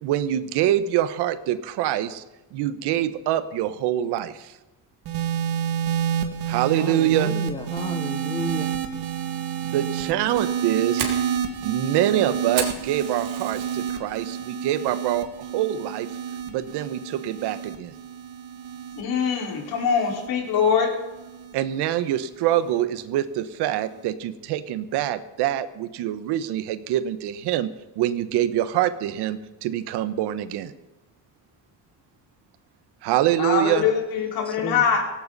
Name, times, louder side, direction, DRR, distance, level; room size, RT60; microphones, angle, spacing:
voice 1, 0.0-2.2 2.5-4.6 6.5-7.3 9.6-11.1 11.6-15.3 15.5-16.1 16.5-17.9 21.5-27.7 27.9-30.7 33.0-33.9, right 12 dB, 90° right, 1.2 m, -25 dB
sound 1, 5.0-21.5 22.4-22.8, right 9 dB, 75° right, 2.4 m, -29 dB
voice 2, 6.8-8.7 34.5-34.8, left 2 dB, 15° left, 1.2 m, -33 dB
Fire, 10.5-13.9 14.3-14.7 15.1-15.2 15.8-16.1, right 6 dB, 55° right, 3.3 m, -33 dB
voice 3, 19.0-21.0 33.4-35.1, left 6 dB, 65° left, 4.8 m, -23 dB
17.5 x 16.5 x 4.1 m
cardioid pair, 135°, 39 cm